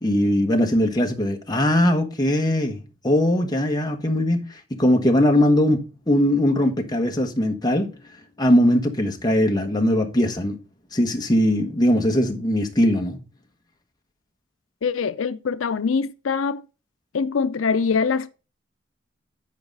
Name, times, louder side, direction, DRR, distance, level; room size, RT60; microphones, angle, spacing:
voice 1, 0.0-2.8 3.0-4.4 4.7-5.8 6.1-7.9 8.4-10.6 10.9-13.2, left 1 dB, 20° left, 1.3 m, -20 dB
voice 2, 14.8-16.6 17.1-18.3, left 5 dB, 85° left, 0.5 m, -23 dB
9.7 x 4.8 x 5.3 m
head